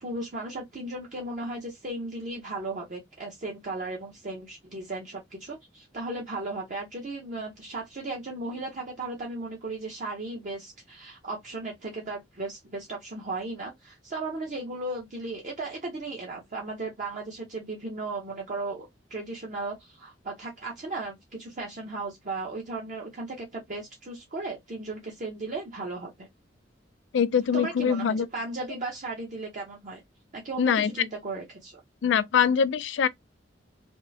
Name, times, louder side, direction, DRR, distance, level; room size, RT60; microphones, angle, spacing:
voice 1, 0.0-26.3 27.5-30.0 30.3-31.8, right 2 dB, 45° right, 0.8 m, -36 dB
voice 2, 27.1-28.3 30.6-30.9 32.0-33.1, left 7 dB, 75° left, 0.4 m, -23 dB
3.5 x 2.0 x 2.6 m
head